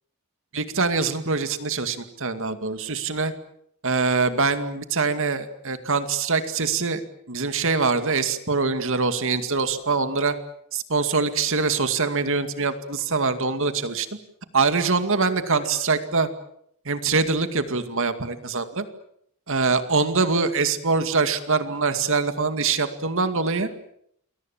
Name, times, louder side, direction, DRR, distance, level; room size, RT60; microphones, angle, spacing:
voice 1, 0.5-3.3 3.8-7.0 7.3-10.3 10.7-14.1 14.5-16.3 16.9-18.9 19.5-23.7, right 4 dB, 65° right, 9 dB, 2.3 m, -24 dB
sound 1, 9.7-10.3 11.0-11.5 12.0-13.4 14.6-15.3 15.6-16.0, left 4 dB, 35° left, 7.5 m, -52 dB
29.0 x 22.5 x 7.4 m, 0.70 s
head